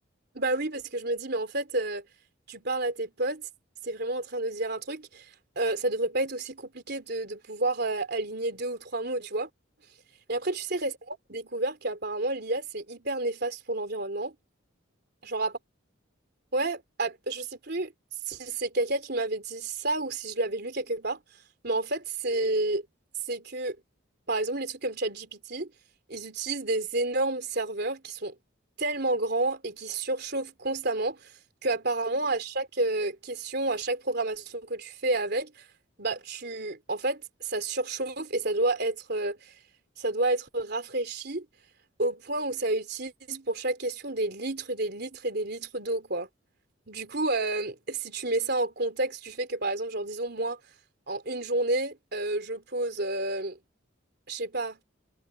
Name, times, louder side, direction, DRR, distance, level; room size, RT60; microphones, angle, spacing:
voice 1, 0.3-2.0 2.5-3.5 3.8-5.2 5.6-9.5 10.3-14.3 15.2-15.5 16.5-17.9 18.3-21.2 21.6-22.9 23.3-23.8 24.3-25.7 26.1-28.4 28.8-31.3 31.6-35.6 36.0-39.5 40.0-41.5 42.0-46.3 46.9-50.6 51.1-53.6 54.3-54.8, right 2 dB, 55° right, 3.6 m, -30 dB
head